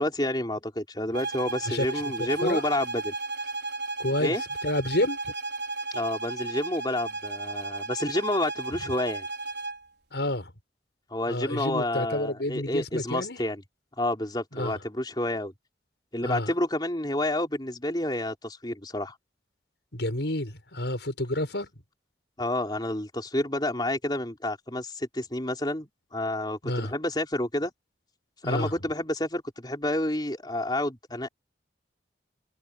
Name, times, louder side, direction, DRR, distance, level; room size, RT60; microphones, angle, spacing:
voice 1, 0.0-3.1 4.2-4.4 5.9-9.3 11.1-13.6 14.0-15.5 16.1-19.2 22.4-27.7 28.4-31.3, left 1 dB, 25° left, 4.1 m, -29 dB
sound 1, 1.1-9.8, right 3 dB, 70° right, 4.5 m, -34 dB
voice 2, 1.6-2.6 4.0-4.4 4.6-5.2 10.1-10.5 11.3-13.4 14.5-14.8 16.2-16.5 19.9-21.7 26.6-26.9 28.4-28.7, left 1 dB, 75° left, 5.8 m, -29 dB
head